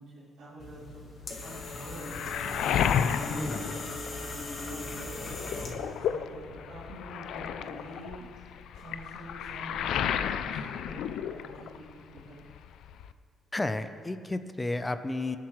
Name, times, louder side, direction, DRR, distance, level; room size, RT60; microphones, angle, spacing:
voice 1, 0.0-8.4 8.7-12.5, right 1 dB, 80° right, -12 dB, 2.8 m, -47 dB
sound 1, 0.6-6.0, left 2 dB, 50° left, 1.4 m, -39 dB
Waves surf, 1.4-4.6 5.0-11.9 12.2-13.1, left 8 dB, 75° left, 0.4 m, -32 dB
voice 2, 3.4-3.7 13.5-15.4, left 2 dB, 15° left, 10 dB, 0.5 m, -32 dB
19.0 x 7.5 x 3.2 m, 2.2 s
cardioid pair, 95°, 0 cm